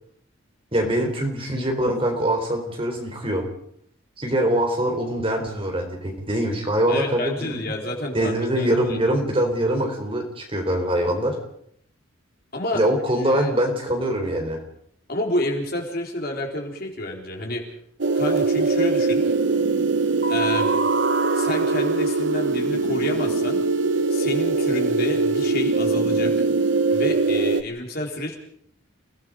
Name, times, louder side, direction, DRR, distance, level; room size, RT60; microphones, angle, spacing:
voice 1, 0.7-3.4 4.2-7.6 8.1-11.4 12.7-14.6, right 1 dB, 25° right, 3 dB, 4.1 m, -23 dB
voice 2, 6.9-9.0 12.5-12.8 13.3-13.5 15.1-17.6 18.1-19.2 20.3-20.7 21.3-23.6 24.1-26.3 26.9-28.4, left 1 dB, 45° left, 1 dB, 4.3 m, -29 dB
sound 1, 18.0-27.6, right 3 dB, 60° right, 1.1 m, -21 dB
30.0 x 18.5 x 5.1 m, 0.69 s
head